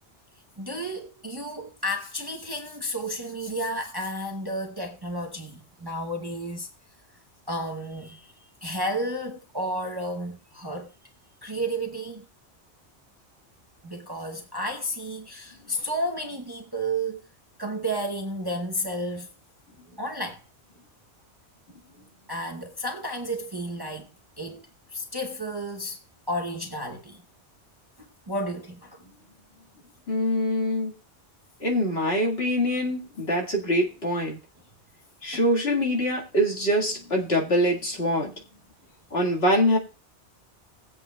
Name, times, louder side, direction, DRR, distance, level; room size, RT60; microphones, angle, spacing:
voice 1, 0.6-6.7 7.5-8.3 8.6-10.9 11.4-12.2 13.8-17.2 17.6-19.3 20.0-20.4 22.3-24.1 24.4-26.0 26.3-27.2 28.0-29.0 35.3-35.4, right 1 dB, 25° right, 0.7 m, -32 dB
voice 2, 30.1-30.9 31.6-34.4 35.2-38.3 39.1-39.8, equal, 60° left, 2.0 m, -24 dB
19.5 x 7.8 x 2.2 m
omnidirectional pair, 1.2 m